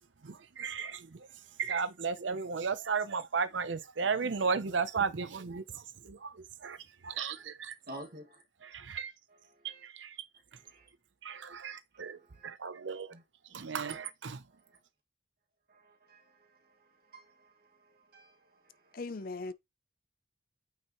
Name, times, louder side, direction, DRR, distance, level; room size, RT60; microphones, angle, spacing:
voice 1, 0.2-1.3 1.6-6.8 7.0-7.7 8.6-9.1 9.9-10.1 11.2-13.1 13.5-14.4, right 5 dB, 80° right, 0.7 m, -35 dB
voice 2, 1.2-1.6 2.3-2.5 7.3-7.4 7.9-8.4 9.3-9.9 10.5-10.9 11.9-12.5 13.1-13.2 14.5-14.8 15.7-19.0, right 1 dB, 55° right, 2.0 m, -53 dB
voice 3, 18.9-19.5, left 3 dB, 50° left, 0.6 m, -38 dB
8.8 x 5.4 x 3.0 m
head